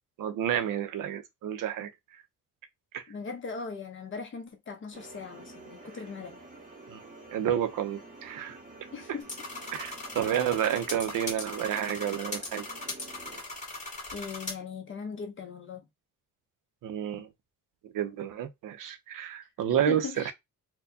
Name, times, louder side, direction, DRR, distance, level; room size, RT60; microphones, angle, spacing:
voice 1, 0.2-1.9 2.9-3.0 6.9-7.0 7.3-8.6 9.7-12.6 16.8-17.3 17.9-20.3, right 10 dB, 70° right, 0.7 m, -30 dB
voice 2, 3.1-6.4 8.9-9.3 14.1-15.9 19.9-20.3, left 5 dB, 35° left, 0.9 m, -39 dB
sound 1, 4.9-13.4, right 2 dB, 25° right, 0.9 m, -49 dB
sound 2, 9.2-14.5, left 2 dB, 20° left, 1.8 m, -39 dB
4.3 x 2.2 x 2.7 m
cardioid pair, 155°, 33 cm